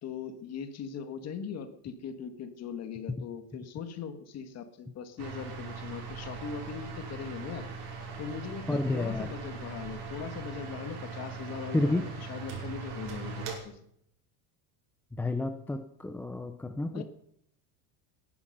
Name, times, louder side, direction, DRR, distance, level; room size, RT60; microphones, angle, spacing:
voice 1, 0.0-7.7 8.2-13.8 16.9-17.0, left 7 dB, 35° left, 8 dB, 1.8 m, -40 dB
sound 1, 5.2-13.6, right 4 dB, 75° right, 5.6 m, -40 dB
voice 2, 8.7-9.3 11.7-12.1 15.1-17.0, left 2 dB, 5° left, 6 dB, 0.5 m, -30 dB
19.0 x 11.0 x 5.5 m, 0.71 s
cardioid pair, 160°, 45 cm